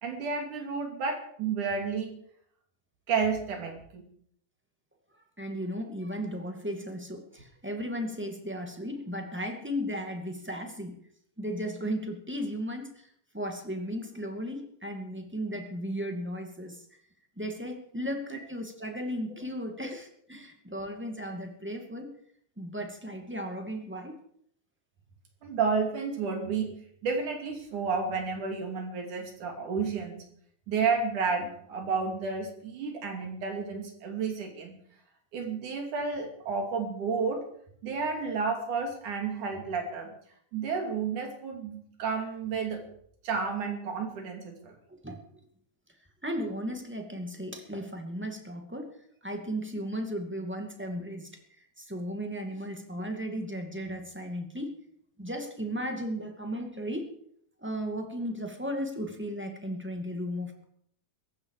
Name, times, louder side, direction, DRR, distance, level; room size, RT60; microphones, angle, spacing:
voice 1, 0.0-2.2 3.1-4.0 18.3-18.4 19.8-19.9 25.4-26.7 27.0-30.2 30.7-34.7 35.3-37.5 37.8-40.1 40.5-42.8 43.2-44.8, right 5 dB, 70° right, 3 dB, 4.2 m, -31 dB
voice 2, 5.4-11.0 11.4-13.1 13.3-16.8 17.4-22.1 22.6-24.2 44.9-45.2 46.2-48.9 49.2-51.3 51.6-54.8 55.2-57.1 57.6-60.6, equal, 5° right, 3 dB, 1.6 m, -35 dB
17.5 x 15.0 x 4.9 m, 0.66 s
omnidirectional pair, 3.7 m